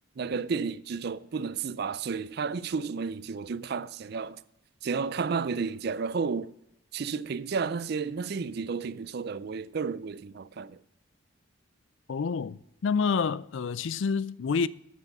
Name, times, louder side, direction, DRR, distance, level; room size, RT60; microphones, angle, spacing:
voice 1, 0.2-4.4 4.8-6.6 6.9-10.8, right 5 dB, 50° right, 0.4 m, -32 dB
voice 2, 12.1-14.7, left 5 dB, 65° left, 0.4 m, -28 dB
9.3 x 5.9 x 7.9 m
head